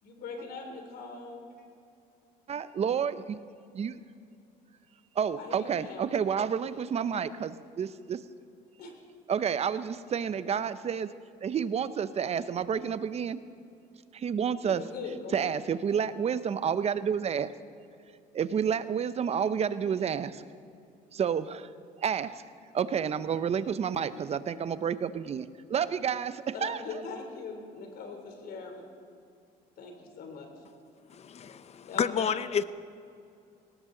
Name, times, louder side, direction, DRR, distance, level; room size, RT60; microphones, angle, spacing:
voice 1, 0.0-1.5 5.4-6.1 8.8-8.9 14.7-15.5 23.9-24.2 26.5-28.8 29.8-30.5 31.9-32.4, left 4 dB, 65° left, 3 dB, 3.2 m, -41 dB
voice 2, 2.5-3.4 3.7-4.0 5.2-8.2 9.3-11.1 11.4-13.4 14.1-14.8 15.3-17.5 18.3-20.4 21.1-21.7 22.0-22.3 22.7-26.8, right 7 dB, 40° right, 14 dB, 0.7 m, -30 dB
voice 3, 31.1-32.6, left 7 dB, 40° left, 15 dB, 0.6 m, -30 dB
18.5 x 18.0 x 3.9 m, 2.5 s
cardioid pair, 110°, 17 cm